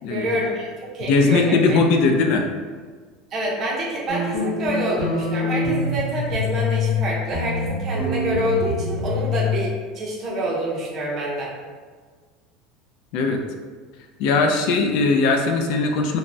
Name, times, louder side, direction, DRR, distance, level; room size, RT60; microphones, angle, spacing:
voice 1, 0.0-1.8 3.3-11.5, right 1 dB, 30° right, -3 dB, 0.5 m, -27 dB
voice 2, 1.0-2.5 13.1-13.4 14.2-16.2, left 3 dB, 55° left, 3 dB, 0.3 m, -19 dB
sound 1, 4.1-7.0 7.3-9.5, left 3 dB, 30° left, 0.8 m, -25 dB
3.3 x 2.0 x 2.5 m, 1.5 s
cardioid pair, 175°, 0 cm